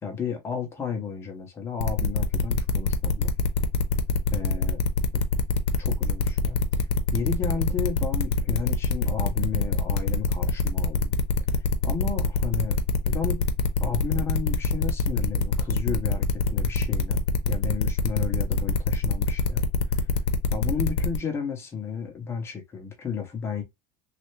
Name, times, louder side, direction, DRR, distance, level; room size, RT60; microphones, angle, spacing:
voice 1, 0.0-3.3 4.3-4.8 5.8-6.8 7.1-11.1 11.5-12.8 13.0-13.4 13.8-19.7 19.9-20.0 20.5-23.6, left 6 dB, 20° left, 0.7 m, -33 dB
sound 1, 1.8-21.2, left 4 dB, 85° left, 0.7 m, -24 dB
3.2 x 2.4 x 3.1 m
cardioid pair, 170°, 14 cm